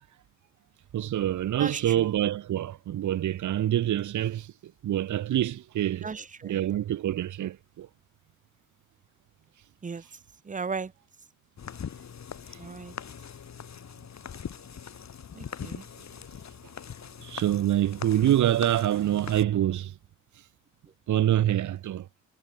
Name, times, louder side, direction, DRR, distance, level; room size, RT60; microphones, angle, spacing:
voice 1, 0.9-4.5 4.8-6.1 6.4-7.9 17.2-19.9 21.1-22.1, right 12 dB, 70° right, 0.7 m, -26 dB
voice 2, 1.6-2.1 6.0-6.6 9.8-10.0 10.5-10.9 12.6-12.9 15.4-15.8, right 5 dB, 25° right, 0.6 m, -36 dB
sound 1, 11.6-19.4, left 7 dB, 60° left, 2.1 m, -42 dB
cardioid pair, 65°, 31 cm